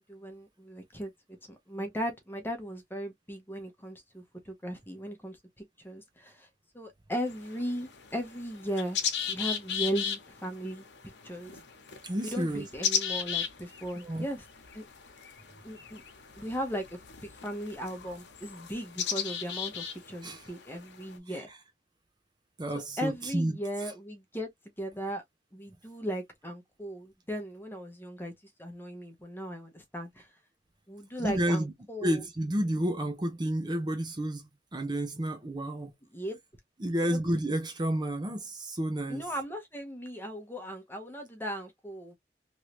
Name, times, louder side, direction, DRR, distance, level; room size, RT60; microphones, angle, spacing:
voice 1, 0.1-1.1 1.5-6.5 6.7-9.0 9.3-10.9 11.2-11.6 12.2-14.4 14.7-14.8 15.6-16.0 16.3-16.8 17.2-21.5 22.7-25.2 25.5-28.3 28.6-30.3 30.9-32.2 36.1-36.4 37.0-37.2 39.1-42.2, equal, 10° left, 0.9 m, -37 dB
sound 1, 7.2-21.2, left 8 dB, 90° left, 0.9 m, -37 dB
voice 2, 12.0-12.7 14.0-14.2 20.2-20.5 21.3-21.4 22.6-23.9 31.2-31.7 32.0-35.9 36.8-39.2, right 1 dB, 25° right, 0.5 m, -31 dB
3.1 x 2.6 x 3.0 m
head